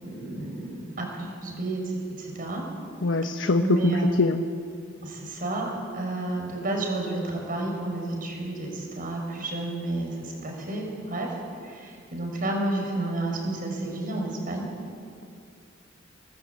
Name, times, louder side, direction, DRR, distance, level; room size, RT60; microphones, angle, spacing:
voice 1, 0.0-2.6 3.6-4.1 5.0-11.3 11.6-14.7, right 2 dB, 50° right, 1 dB, 6.3 m, -31 dB
voice 2, 3.0-4.4, left 3 dB, 80° left, 6 dB, 1.1 m, -23 dB
30.0 x 20.0 x 8.6 m, 2.3 s
head